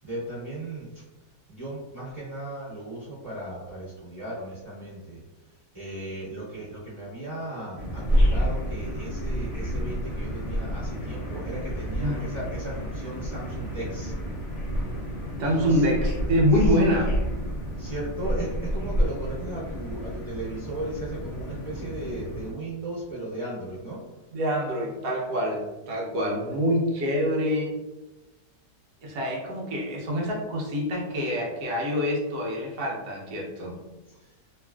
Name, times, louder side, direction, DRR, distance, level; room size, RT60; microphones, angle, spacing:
voice 1, 0.0-1.0 1.5-5.2 5.7-14.1 15.6-15.8 16.6-17.0 17.8-24.0 34.1-34.3, right 1 dB, 10° right, -13 dB, 1.3 m, -36 dB
sound 1, 7.8-22.5, equal, 65° left, 0.6 m, -29 dB
voice 2, 12.0-12.3 15.4-17.2 24.3-27.7 29.0-33.8, equal, 70° right, -2 dB, 1.2 m, -26 dB
3.3 x 2.4 x 2.2 m, 1.1 s
omnidirectional pair, 1.9 m